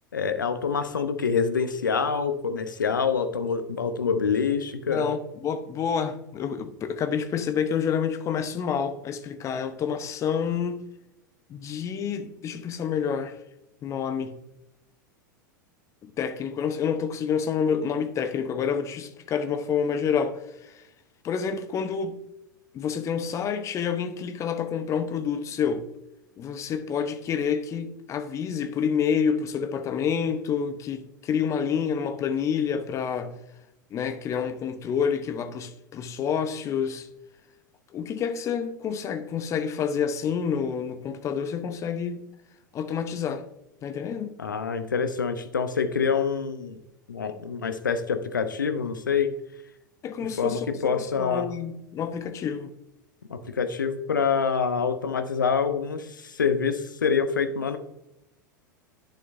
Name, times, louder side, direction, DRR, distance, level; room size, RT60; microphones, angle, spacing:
voice 1, 0.1-5.1 44.4-46.8 47.1-49.3 50.4-51.5 53.3-57.8, left 6 dB, 75° left, 0.8 m, -26 dB
voice 2, 4.9-10.9 11.5-13.4 13.8-14.4 16.0-20.9 21.2-22.2 22.7-25.8 26.4-33.4 33.9-37.1 37.9-42.3 42.7-43.5 43.8-44.4 50.0-52.7, left 7 dB, 30° left, 0.8 m, -28 dB
11.0 x 6.5 x 2.6 m
figure-of-eight pair, 85°, 11 cm